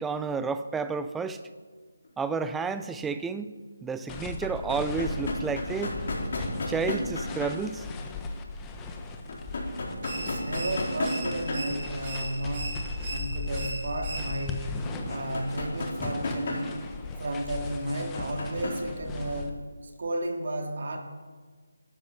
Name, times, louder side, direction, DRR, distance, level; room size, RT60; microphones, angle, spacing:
voice 1, 0.0-1.4 2.2-3.5 3.8-6.0 6.7-7.9, right 5 dB, 5° right, 11 dB, 0.5 m, -31 dB
sound 1, 2.0-2.1 4.1-7.5 9.3-11.7 12.0-12.1 14.8-16.7 18.1-18.8 19.4-19.5, left 2 dB, 45° left, 4.2 m, -33 dB
sound 2, 4.1-19.5, left 3 dB, 10° left, 1.1 m, -38 dB
sound 3, 10.0-14.6, right 2 dB, 30° right, 4.1 m, -39 dB
voice 2, 10.2-12.8 13.1-16.8 17.2-21.0, right 1 dB, 55° right, 3 dB, 2.1 m, -33 dB
13.0 x 13.0 x 7.4 m, 1.5 s
figure-of-eight pair, 160°, 0 cm